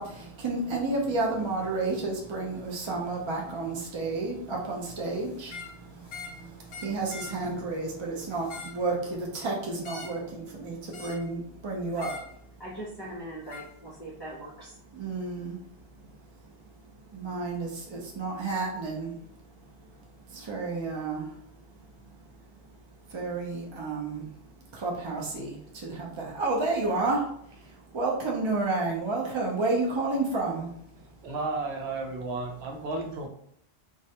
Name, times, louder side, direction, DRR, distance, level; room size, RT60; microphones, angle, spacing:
voice 1, 0.0-12.1 14.9-15.6 17.1-19.2 20.3-21.4 23.1-24.3 24.7-30.7, right 3 dB, 45° right, -2 dB, 0.4 m, -31 dB
sound 1, 5.4-5.8 6.1-6.4 6.7-7.4 8.3-8.8 9.8-10.2 10.9-11.3 12.0-12.3 13.5-13.7, left 4 dB, 70° left, 0.8 m, -42 dB
voice 2, 12.6-14.8, right 1 dB, 30° left, -8 dB, 0.6 m, -41 dB
voice 3, 31.2-33.3, right 3 dB, 85° right, 2 dB, 0.8 m, -33 dB
2.3 x 2.1 x 2.7 m, 0.70 s
omnidirectional pair, 1.1 m